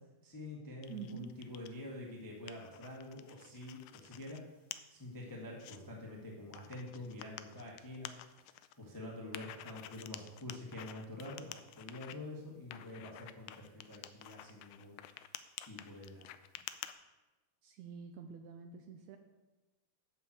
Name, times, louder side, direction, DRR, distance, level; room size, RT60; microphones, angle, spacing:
voice 1, 0.2-4.4 4.9-8.1 8.8-15.0 15.6-16.3, left 1 dB, 15° left, -3 dB, 0.6 m, -47 dB
sound 1, 0.8-1.7 2.2-4.4 4.7-4.8 5.3-5.8 6.5-8.7 9.3-12.1 12.7-16.9, left 13 dB, 80° left, 1.9 m, -49 dB
voice 2, 0.9-1.3 17.6-19.2, right 7 dB, 80° right, 5 dB, 1.7 m, -47 dB
11.0 x 4.4 x 7.7 m, 1.1 s
omnidirectional pair, 3.8 m